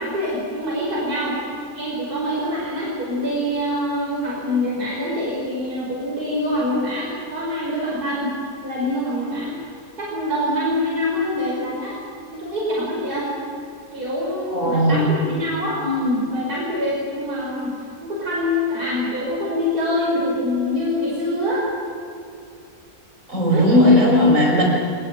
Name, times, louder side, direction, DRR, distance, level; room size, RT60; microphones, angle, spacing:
voice 1, 0.0-1.4 1.7-8.3 8.6-9.5 10.0-12.0 12.3-13.3 13.9-17.7 18.0-21.6 23.5-24.0, left 1 dB, 85° right, -5 dB, 5.9 m, -25 dB
voice 2, 14.5-15.1 23.3-24.6, left 1 dB, 55° right, -1 dB, 6.3 m, -16 dB
25.0 x 20.0 x 9.2 m, 2.4 s
omnidirectional pair, 1.6 m